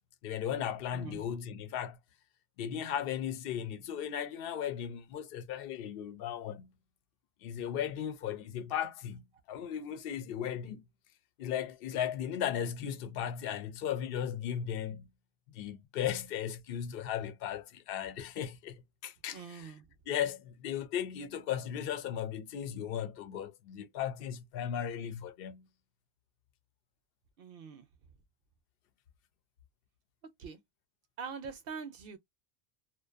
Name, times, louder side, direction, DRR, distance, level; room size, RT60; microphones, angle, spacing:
voice 1, 0.2-2.0 2.6-6.7 7.4-9.2 9.5-10.8 11.4-15.1 15.5-19.7 20.1-25.7, left 9 dB, 65° left, 0.7 m, -36 dB
voice 2, 0.9-1.3 19.3-19.9 27.4-27.9 30.4-30.6 31.2-32.2, right 5 dB, 70° right, 0.7 m, -43 dB
2.5 x 2.1 x 2.3 m
omnidirectional pair, 1.1 m